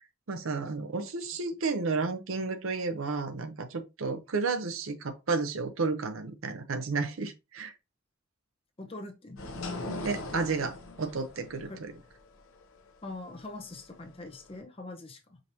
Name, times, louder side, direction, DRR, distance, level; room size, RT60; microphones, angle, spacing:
voice 1, 0.3-7.7 10.0-11.9, right 4 dB, 75° right, 0.6 m, -32 dB
voice 2, 8.8-9.5 11.7-11.8 13.0-15.4, left 2 dB, 25° left, 0.7 m, -43 dB
sound 1, 9.4-14.6, left 2 dB, 75° left, 0.8 m, -41 dB
5.0 x 2.9 x 2.6 m
head